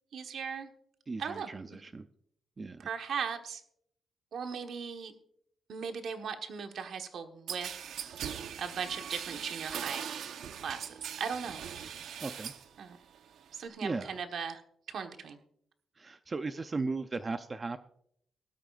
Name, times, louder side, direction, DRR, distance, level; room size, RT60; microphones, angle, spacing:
voice 1, 0.1-0.7 1.2-1.5 2.8-3.6 4.3-5.1 5.7-7.7 8.6-10.1 10.5-10.9 11.2-11.6 12.8-13.0 13.5-14.6 14.9-15.4, right 6 dB, 60° right, 6 dB, 1.3 m, -38 dB
voice 2, 1.1-2.1 2.6-2.8 12.2-12.5 13.8-14.1 16.0-17.8, right 3 dB, 25° right, 9 dB, 0.5 m, -36 dB
sound 1, 7.5-12.7 13.0-13.7, right 8 dB, 75° right, 0.9 m, -40 dB
19.0 x 13.0 x 2.5 m, 0.69 s
wide cardioid pair, 160°, 0 cm